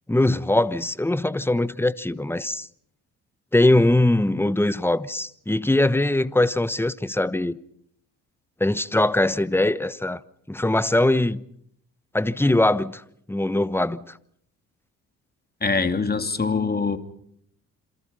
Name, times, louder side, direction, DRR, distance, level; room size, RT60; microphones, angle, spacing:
voice 1, 0.1-2.7 3.5-7.6 8.6-10.2 10.5-11.4 12.1-13.0 13.3-14.0, left 1 dB, 5° left, 1.2 m, -21 dB
voice 2, 15.6-17.0, left 4 dB, 25° left, 2.9 m, -23 dB
27.5 x 27.5 x 5.6 m
hypercardioid pair, 50°, 38 cm